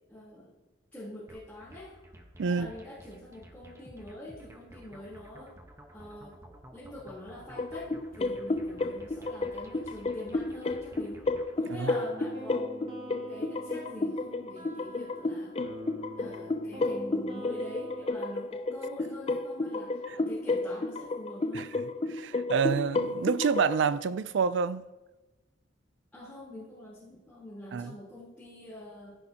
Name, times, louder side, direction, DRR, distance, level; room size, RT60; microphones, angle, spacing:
voice 1, 0.1-0.5 0.9-2.0 2.4-5.5 5.9-6.3 6.7-11.3 11.6-12.7 13.3-15.5 16.2-21.7 26.1-29.2, left 1 dB, 10° left, 3.5 m, -45 dB
sound 1, 1.3-11.6, equal, 15° right, 1.1 m, -53 dB
voice 2, 2.4-2.7 11.7-11.9 20.1-20.2 21.5-21.7 22.1-24.9 27.7-27.9, right 6 dB, 65° right, 0.4 m, -28 dB
sound 2, 7.6-23.9, left 2 dB, 30° left, 0.5 m, -32 dB
sound 3, 12.0-18.1, equal, 35° right, 2.8 m, -44 dB
15.5 x 9.9 x 2.9 m
head